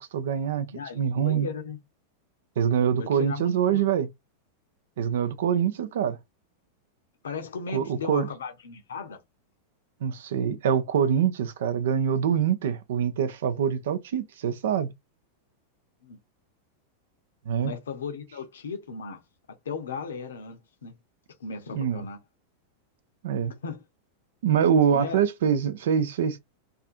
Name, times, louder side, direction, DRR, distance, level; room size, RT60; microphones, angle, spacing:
voice 1, 0.0-1.5 2.6-4.1 5.0-6.2 7.7-8.3 10.0-14.9 17.5-17.7 21.7-22.0 23.2-23.5 24.4-26.4, right 8 dB, 60° right, 0.4 m, -25 dB
voice 2, 0.7-1.8 3.0-3.8 7.2-9.2 16.0-16.2 17.6-19.2 19.6-21.0 21.4-22.2 23.6-23.8 24.8-25.2, left 5 dB, 65° left, 0.6 m, -36 dB
2.5 x 2.5 x 2.5 m
figure-of-eight pair, 90°, 0 cm